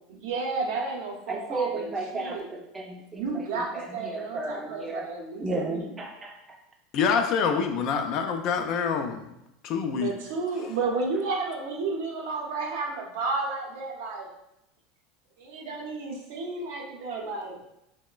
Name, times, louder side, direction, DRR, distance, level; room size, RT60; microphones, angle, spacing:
voice 1, 0.1-2.5 3.2-5.9 9.9-14.3 15.4-17.6, right 3 dB, 75° right, -1 dB, 0.6 m, -32 dB
voice 2, 1.3-5.1 5.4-6.6, right 3 dB, 20° right, 1 dB, 0.5 m, -34 dB
voice 3, 6.9-9.4 9.6-10.1, left 6 dB, 55° left, 5 dB, 0.3 m, -26 dB
2.9 x 2.1 x 2.2 m, 0.84 s
supercardioid pair, 100°, 0 cm